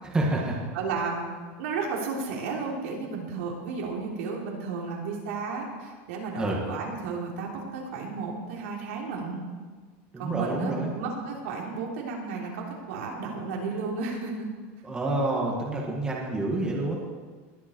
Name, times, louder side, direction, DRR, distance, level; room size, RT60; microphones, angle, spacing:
voice 1, 0.0-0.6 6.4-6.6 10.1-10.9 14.8-17.0, right 2 dB, 10° right, -2 dB, 1.8 m, -28 dB
voice 2, 0.7-1.3 1.6-9.4 10.2-14.5, right 4 dB, 80° right, -2 dB, 3.3 m, -33 dB
20.5 x 8.1 x 4.6 m, 1.4 s
supercardioid pair, 165°, 7 cm